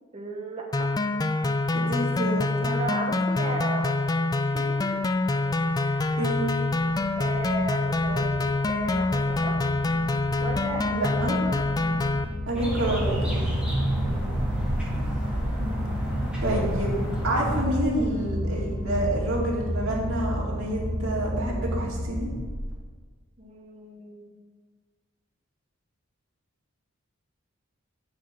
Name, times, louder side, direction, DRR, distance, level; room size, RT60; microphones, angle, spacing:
voice 1, 0.1-0.9 2.6-4.0 4.4-5.0 5.8-6.0 7.1-8.4 8.6-9.6 10.4-11.6 14.1-14.6 14.9-15.0 23.4-24.4, right 2 dB, 30° right, -1 dB, 0.9 m, -36 dB
sound 1, 0.7-12.2, left 2 dB, 20° left, 0.3 m, -26 dB
voice 2, 1.7-2.8 6.2-6.4 10.9-11.3 12.5-13.5 15.6-15.7 16.4-16.9 17.2-22.3, right 1 dB, 85° right, -3 dB, 2.4 m, -28 dB
sound 2, 5.2-22.7, equal, 50° left, 2.9 m, -33 dB
sound 3, 12.6-17.7, right 1 dB, 5° right, 1.7 m, -28 dB
6.5 x 5.7 x 7.3 m, 1.5 s
head